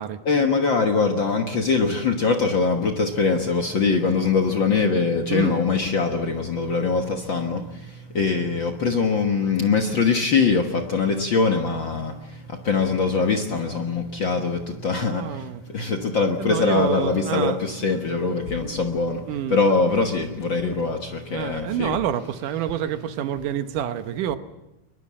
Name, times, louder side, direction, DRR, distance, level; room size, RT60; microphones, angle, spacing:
voice 1, 0.2-22.0, left 4 dB, 50° left, 4 dB, 1.6 m, -23 dB
voice 2, 15.1-15.6 16.4-17.7 18.1-18.2 19.3-19.6 21.3-24.4, right 10 dB, 75° right, 10 dB, 2.6 m, -28 dB
23.0 x 21.0 x 7.5 m, 0.96 s
omnidirectional pair, 3.8 m